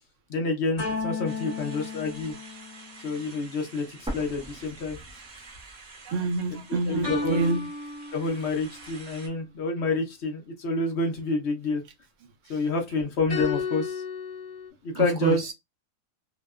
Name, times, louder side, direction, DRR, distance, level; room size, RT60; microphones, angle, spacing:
voice 1, 0.3-2.3 3.0-5.0 6.9-7.6 8.1-11.8 12.5-14.0 14.8-15.4, left 3 dB, 60° left, 0.8 m, -28 dB
sound 1, 0.8-3.3 7.0-8.8 13.3-14.7, left 4 dB, 30° left, 1.1 m, -34 dB
sound 2, 1.2-9.3, right 3 dB, 35° right, 1.0 m, -48 dB
sound 3, 4.1-6.0 6.3-6.4 7.1-8.1, right 1 dB, 10° right, 0.3 m, -39 dB
voice 2, 6.1-7.7 12.5-12.6 14.9-15.5, right 3 dB, 65° right, 0.9 m, -28 dB
2.8 x 2.1 x 2.3 m
omnidirectional pair, 1.5 m